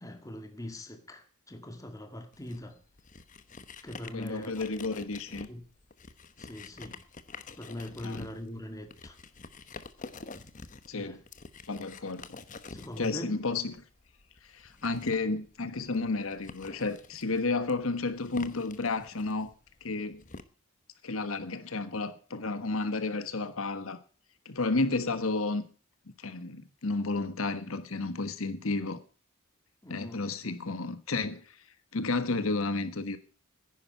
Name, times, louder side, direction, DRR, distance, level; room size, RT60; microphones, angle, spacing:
voice 1, 0.0-2.8 3.8-4.5 5.5-5.6 6.4-7.0 7.6-9.2 10.9-11.2 12.7-13.4 19.9-20.0 29.8-30.3, left 1 dB, 15° left, 1.8 m, -41 dB
sound 1, 2.3-20.4, left 4 dB, 40° left, 1.0 m, -48 dB
voice 2, 4.1-5.5 8.0-8.3 10.9-11.2 11.7-12.4 13.0-13.8 14.4-19.5 19.8-20.2 21.0-24.0 24.4-25.6 26.2-29.0 29.9-31.6 31.9-33.2, left 3 dB, 80° left, 1.3 m, -32 dB
10.5 x 10.0 x 8.3 m
head